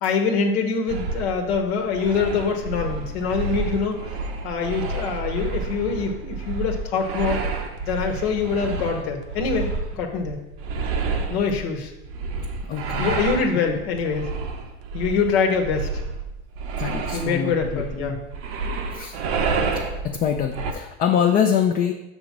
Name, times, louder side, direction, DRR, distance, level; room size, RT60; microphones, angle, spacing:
voice 1, 0.0-4.0 4.4-7.4 7.8-9.7 9.9-10.4 11.3-11.9 13.0-14.2 14.9-15.9 17.1-18.2, left 5 dB, 80° left, 3 dB, 1.1 m, -24 dB
sound 1, 0.9-20.7, right 4 dB, 75° right, 0.9 m, -29 dB
voice 2, 12.6-13.2 13.7-13.8 15.4-15.5 16.8-18.2 18.9-19.2 19.7-21.9, left 8 dB, 30° left, 3 dB, 0.4 m, -24 dB
6.5 x 3.0 x 5.8 m, 0.96 s
supercardioid pair, 120°, 31 cm